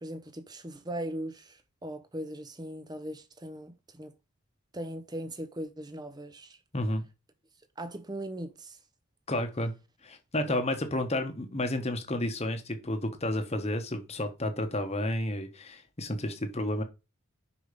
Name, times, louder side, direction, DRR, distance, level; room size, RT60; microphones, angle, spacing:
voice 1, 0.0-4.1 4.7-6.6 7.8-8.8 10.5-10.6, right 1 dB, 20° right, 0.8 m, -39 dB
voice 2, 6.7-7.0 9.3-9.7 10.0-16.8, left 1 dB, 30° left, 1.1 m, -31 dB
5.4 x 4.9 x 5.2 m
head